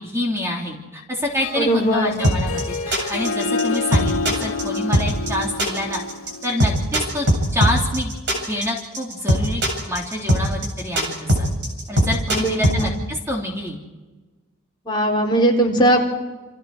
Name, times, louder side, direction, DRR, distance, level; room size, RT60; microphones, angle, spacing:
voice 1, 0.0-6.0 6.4-7.3 7.5-8.1 8.5-11.5 11.9-13.8, left 1 dB, 15° right, -1 dB, 3.3 m, -27 dB
Harp, 1.3-6.8, left 4 dB, 85° left, 1.7 m, -28 dB
voice 2, 1.6-2.1 12.3-12.9 14.9-16.2, right 1 dB, 20° left, -2 dB, 4.2 m, -19 dB
sound 1, 2.2-12.8, equal, 55° right, 7.6 m, -19 dB
29.0 x 27.0 x 4.8 m, 1.2 s
head